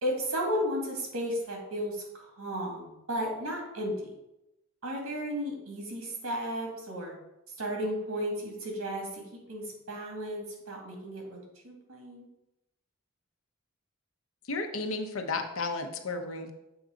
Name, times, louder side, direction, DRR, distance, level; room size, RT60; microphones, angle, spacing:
voice 1, 0.0-4.1 4.8-7.1 7.6-9.2 9.5-11.4 11.6-12.3, equal, 90° right, 0 dB, 2.0 m, -34 dB
voice 2, 14.5-16.5, left 3 dB, 70° left, 5 dB, 0.8 m, -33 dB
7.1 x 3.8 x 5.0 m, 0.90 s
head